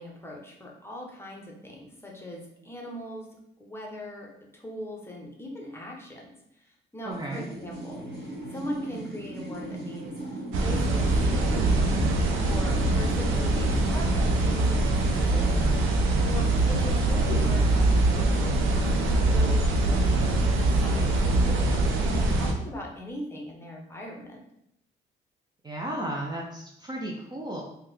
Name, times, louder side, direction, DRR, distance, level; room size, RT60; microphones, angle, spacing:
voice 1, 0.0-3.3 3.6-12.1 12.4-15.8 16.3-24.4, equal, 10° left, -1 dB, 0.7 m, -40 dB
voice 2, 7.0-7.5 25.6-27.6, right 1 dB, 20° right, -1 dB, 0.4 m, -34 dB
sound 1, 7.1-14.6, right 2 dB, 60° right, 1.4 m, -38 dB
sound 2, 10.5-22.5, right 2 dB, 90° right, 0.5 m, -23 dB
Organ, 10.8-21.7, left 9 dB, 40° left, 0.4 m, -44 dB
3.6 x 2.2 x 3.1 m, 0.80 s
cardioid pair, 90°, 20 cm